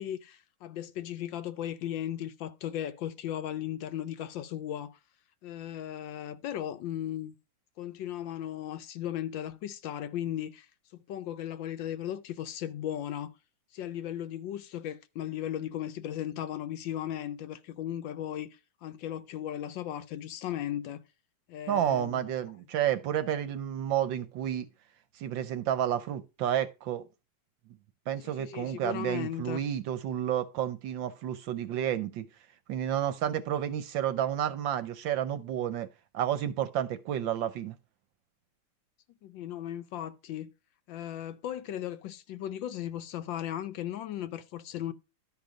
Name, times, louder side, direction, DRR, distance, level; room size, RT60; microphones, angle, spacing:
voice 1, 0.0-5.0 5.4-7.3 7.8-10.7 11.1-13.3 13.7-21.0 21.5-22.3 28.2-29.6 39.2-40.5 40.9-44.9, left 11 dB, 70° left, 1.3 m, -36 dB
voice 2, 21.7-24.7 25.2-27.1 28.1-32.3 32.7-35.9 36.1-37.8, right 10 dB, 70° right, 1.4 m, -30 dB
12.0 x 5.0 x 5.0 m
omnidirectional pair, 2.3 m